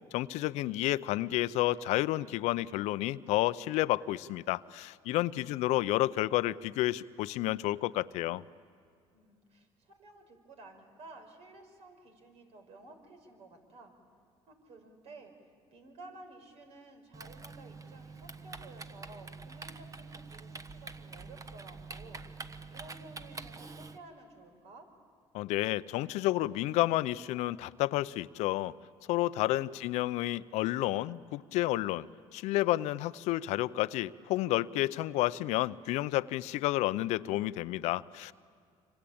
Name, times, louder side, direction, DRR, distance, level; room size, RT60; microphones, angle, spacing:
voice 1, 0.1-8.4 25.3-28.7 29.1-32.1 32.3-38.3, left 16 dB, 80° left, 16 dB, 0.6 m, -30 dB
voice 2, 5.3-5.9 9.1-13.9 14.5-15.3 15.7-22.2 22.7-24.9 29.4-29.8, right 2 dB, 65° right, 5 dB, 5.1 m, -53 dB
Typing, 17.1-24.0, right 4 dB, 30° right, 1.3 m, -46 dB
26.5 x 26.0 x 8.7 m, 2.2 s
supercardioid pair, 85°, 11 cm